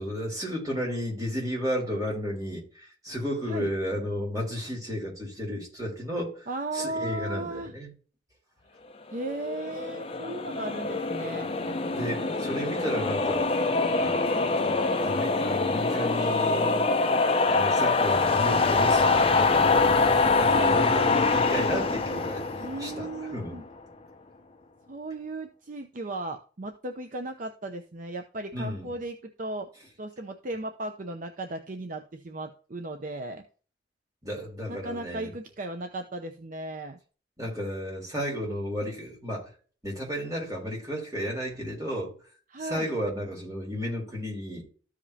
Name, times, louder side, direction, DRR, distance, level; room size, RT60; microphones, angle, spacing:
voice 1, 0.0-6.5 6.7-7.9 11.9-13.5 13.9-16.9 17.4-23.1 23.3-23.6 28.5-28.9 34.2-35.3 37.4-39.5 39.8-42.1 42.6-44.6, equal, 20° right, 3.6 m, -33 dB
voice 2, 6.5-7.7 9.1-11.5 20.4-20.8 22.6-23.6 24.9-29.7 30.0-33.4 34.7-37.0 42.5-42.9, right 2 dB, 50° right, 0.7 m, -36 dB
sound 1, 9.3-23.6, left 3 dB, 30° left, 0.7 m, -24 dB
13.5 x 5.0 x 2.8 m
head